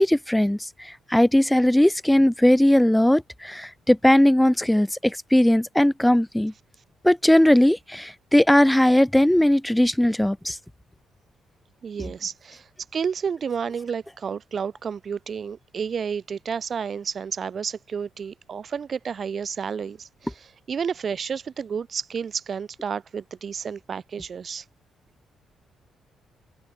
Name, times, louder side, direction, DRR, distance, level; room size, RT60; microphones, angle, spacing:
voice 1, 0.0-6.5 7.0-10.6, left 1 dB, 5° left, 1.4 m, -19 dB
voice 2, 11.8-24.6, right 6 dB, 45° right, 1.7 m, -31 dB
cardioid pair, 90°, 0 cm